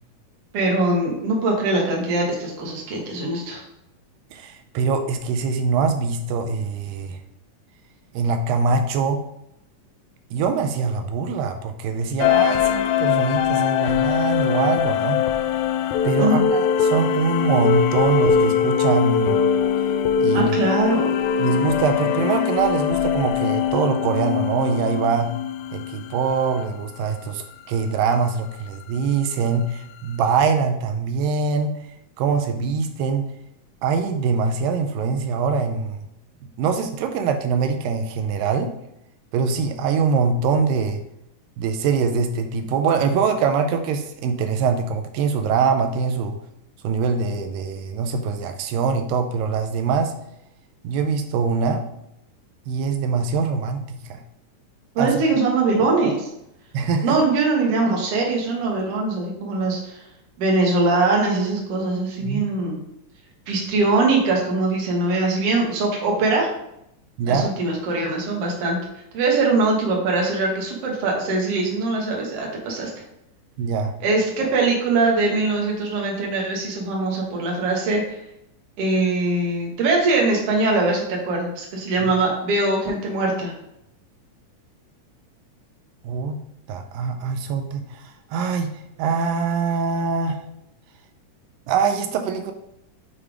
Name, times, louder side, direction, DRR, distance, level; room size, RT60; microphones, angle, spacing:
voice 1, 0.5-3.6 16.2-16.4 20.3-21.1 55.0-56.3 57.0-60.0 60.4-62.8 63.5-66.5 67.2-68.8 69.1-72.9 74.0-78.2 78.8-83.5, right 3 dB, 55° right, -1 dB, 2.0 m, -22 dB
voice 2, 4.3-7.2 8.1-9.2 10.3-15.2 16.0-19.4 20.2-20.6 21.4-25.3 25.7-31.8 32.2-33.3 33.8-36.0 36.6-38.7 39.3-41.0 41.6-46.4 46.8-50.1 50.8-51.8 52.7-54.2 55.0-55.2 56.7-57.2 62.2-62.5 67.2-67.5 73.6-74.0 82.0-82.1 86.0-86.4 86.7-90.4 91.7-92.5, right 5 dB, 85° right, 6 dB, 2.2 m, -23 dB
sound 1, 12.2-26.3, left 8 dB, 85° left, 1.7 m, -21 dB
7.1 x 3.3 x 4.8 m, 0.80 s
omnidirectional pair, 3.8 m